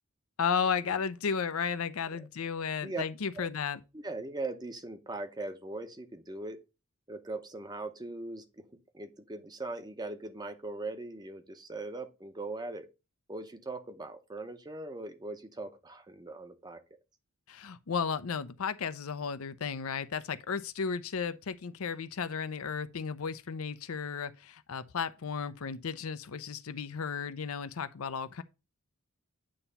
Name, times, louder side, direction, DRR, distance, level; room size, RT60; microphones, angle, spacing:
voice 1, 0.4-3.8 17.5-28.4, left 6 dB, 75° left, 0.6 m, -34 dB
voice 2, 3.9-6.6 7.1-12.9 13.3-16.8, right 2 dB, 20° right, 0.7 m, -40 dB
8.7 x 3.0 x 5.5 m
head